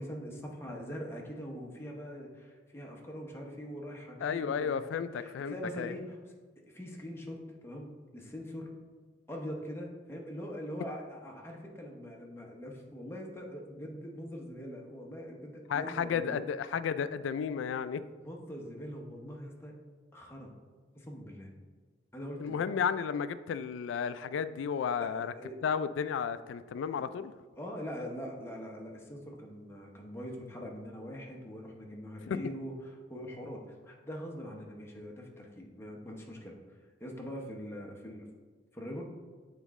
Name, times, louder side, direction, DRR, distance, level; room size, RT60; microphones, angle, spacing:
voice 1, 0.0-6.2 6.7-8.7 9.3-16.4 18.2-19.7 20.1-20.5 20.9-21.5 22.1-22.6 25.0-25.6 26.9-27.1 27.6-36.6 37.0-38.3 38.7-39.0, equal, 15° left, -1 dB, 0.8 m, -43 dB
voice 2, 4.2-5.9 15.7-18.0 22.4-25.3 25.6-27.3 32.3-32.4, left 7 dB, 85° left, 13 dB, 0.3 m, -33 dB
7.1 x 4.1 x 3.6 m, 1.5 s
head